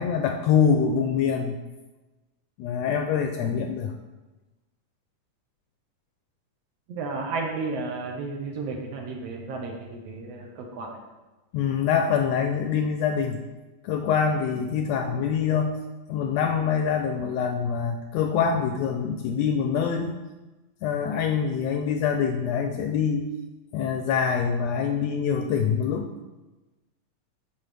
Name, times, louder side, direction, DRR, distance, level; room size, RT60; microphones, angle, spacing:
voice 1, 0.0-1.6 2.6-3.9 11.5-13.4 13.8-15.7 16.1-20.2 20.8-23.3 23.7-26.1, left 7 dB, 80° left, 5 dB, 1.5 m, -25 dB
voice 2, 6.9-11.0, right 3 dB, 70° right, 1 dB, 1.7 m, -33 dB
9.2 x 5.5 x 3.3 m, 1.1 s
omnidirectional pair, 3.3 m